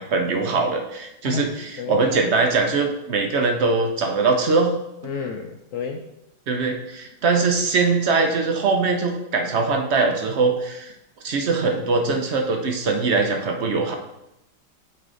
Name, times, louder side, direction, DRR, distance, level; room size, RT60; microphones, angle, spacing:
voice 1, 0.0-4.8 6.5-10.9 11.2-13.9, right 4 dB, 60° right, 3 dB, 0.7 m, -22 dB
voice 2, 1.2-2.0 5.0-6.1, left 6 dB, 85° left, 3 dB, 0.7 m, -31 dB
9.3 x 3.3 x 3.8 m, 0.87 s
omnidirectional pair, 1.9 m